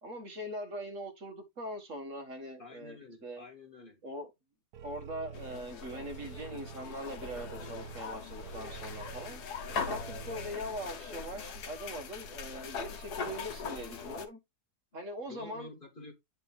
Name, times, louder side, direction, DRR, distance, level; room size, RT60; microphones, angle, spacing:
voice 1, 0.0-3.4 4.0-4.3 4.8-9.4 9.9-14.4 14.9-15.7, equal, 55° right, 1.8 m, -41 dB
voice 2, 2.6-4.0 10.5-10.8 15.3-16.1, left 2 dB, 30° left, 1.9 m, -49 dB
sound 1, 4.7-10.5, right 7 dB, 85° right, 1.3 m, -48 dB
sound 2, 5.3-14.3, left 5 dB, 80° left, 1.5 m, -41 dB
9.0 x 4.3 x 3.5 m
omnidirectional pair, 1.7 m